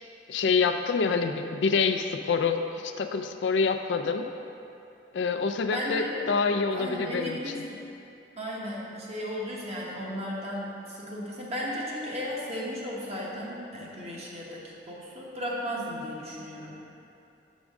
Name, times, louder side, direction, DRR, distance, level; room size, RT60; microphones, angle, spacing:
voice 1, 0.3-4.3 5.1-7.6, left 5 dB, 90° left, 6 dB, 0.4 m, -26 dB
voice 2, 5.7-6.2 6.7-7.6 8.4-16.8, equal, 40° right, -5 dB, 1.1 m, -35 dB
6.3 x 6.1 x 3.5 m, 2.7 s
head